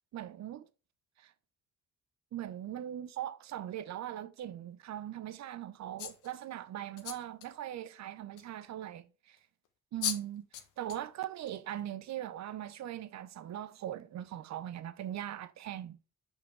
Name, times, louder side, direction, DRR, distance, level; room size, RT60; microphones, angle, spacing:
voice 1, 0.1-0.7 1.2-1.3 2.3-9.4 9.9-16.0, right 11 dB, 65° right, 0.8 m, -40 dB
sound 1, 6.0-6.3 7.0-7.5 8.4-8.5 9.7-9.8 10.0-10.2 10.5-11.0 11.5-11.7, left 9 dB, 90° left, 1.2 m, -37 dB
6.2 x 5.8 x 4.7 m
cardioid pair, 90°, 30 cm